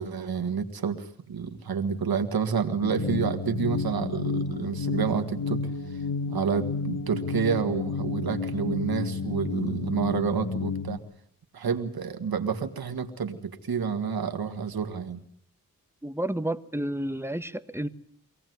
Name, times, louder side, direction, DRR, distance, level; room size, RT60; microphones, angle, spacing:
voice 1, 0.0-5.6 6.3-11.0 11.5-15.2, right 6 dB, 85° right, 6 dB, 1.9 m, -29 dB
sound 1, 2.8-11.0, left 4 dB, 85° left, 1.9 m, -31 dB
voice 2, 16.0-17.9, right 1 dB, 5° right, 11 dB, 1.5 m, -30 dB
24.0 x 17.5 x 9.5 m, 0.65 s
cardioid pair, 45°, 35 cm